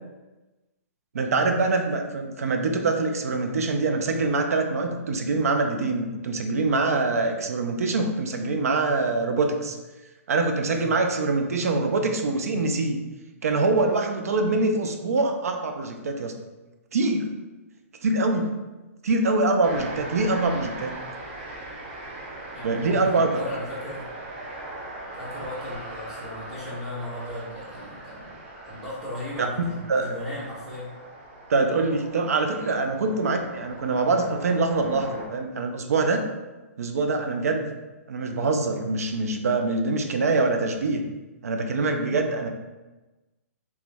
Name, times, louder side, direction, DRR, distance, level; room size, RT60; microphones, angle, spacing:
voice 1, 1.1-9.8 10.3-13.0 13.4-16.3 16.9-17.3 18.0-18.6 19.0-21.0 22.6-23.4 29.9-30.1 31.5-36.2 36.8-37.7 38.1-41.0 41.4-42.5, right 3 dB, 80° right, 4 dB, 0.5 m, -24 dB
voice 2, 10.6-10.9 22.5-24.0 25.2-28.4 28.6-30.9, left 1 dB, 5° right, -9 dB, 1.4 m, -36 dB
sound 1, 19.6-35.3, right 2 dB, 40° right, 0.9 m, -40 dB
3.1 x 3.0 x 3.5 m, 1.1 s
hypercardioid pair, 145°, 8 cm